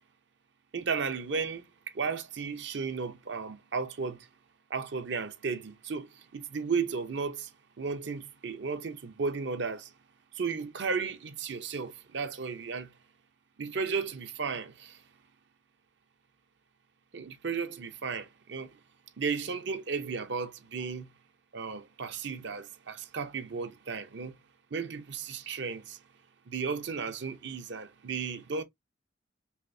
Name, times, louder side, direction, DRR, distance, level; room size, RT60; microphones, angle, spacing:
voice 1, 0.7-1.6 1.9-4.3 4.7-7.5 7.8-9.9 10.4-12.9 13.6-15.0 17.1-18.7 19.2-21.1 21.5-24.4 24.7-26.0 26.5-28.6, right 5 dB, 65° right, 0.6 m, -34 dB
5.6 x 2.0 x 2.6 m
head